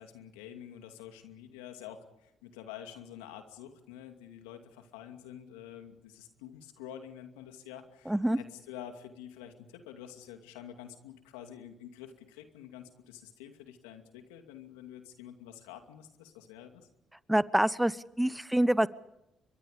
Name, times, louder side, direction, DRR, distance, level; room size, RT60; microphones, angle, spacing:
voice 1, 0.0-16.9, left 10 dB, 85° left, 6 dB, 2.5 m, -48 dB
voice 2, 8.1-8.4 17.3-18.9, right 1 dB, 5° right, 17 dB, 1.0 m, -26 dB
30.0 x 24.0 x 5.2 m, 0.84 s
hypercardioid pair, 50°, 0 cm